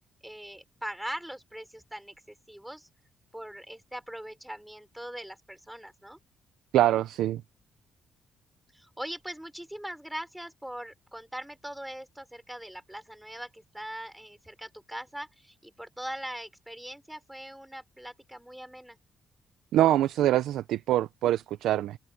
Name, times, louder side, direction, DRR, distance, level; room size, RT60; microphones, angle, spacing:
voice 1, 0.2-2.9 3.3-6.2 8.7-19.0, right 1 dB, 5° right, 5.5 m, -41 dB
voice 2, 6.7-7.4 19.7-22.0, right 13 dB, 85° right, 0.6 m, -24 dB
open air
cardioid pair, 90°, 0 cm